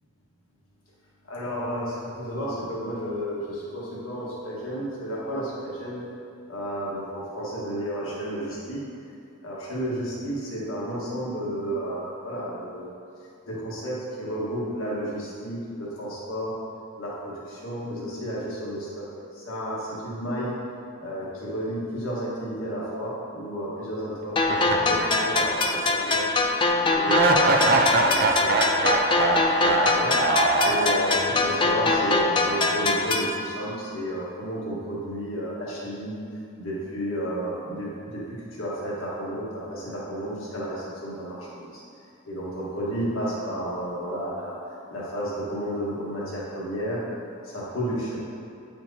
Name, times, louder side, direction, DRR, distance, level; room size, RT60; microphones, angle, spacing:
voice 1, 1.3-6.0 6.5-8.8 9.4-12.9 13.5-16.5 17.0-19.0 19.3-20.5 21.0-26.2 26.8-30.1 30.6-36.1 36.6-38.2 38.6-41.8 42.3-44.6 44.9-47.0 47.5-48.2, equal, 75° left, -7 dB, 1.4 m, -32 dB
sound 1, 24.4-33.4, left 3 dB, 25° left, 0.3 m, -23 dB
sound 2, 24.5-25.8 26.1-26.2 27.1-31.4, right 2 dB, 45° right, 0.4 m, -23 dB
9.2 x 4.4 x 2.7 m, 2.6 s
head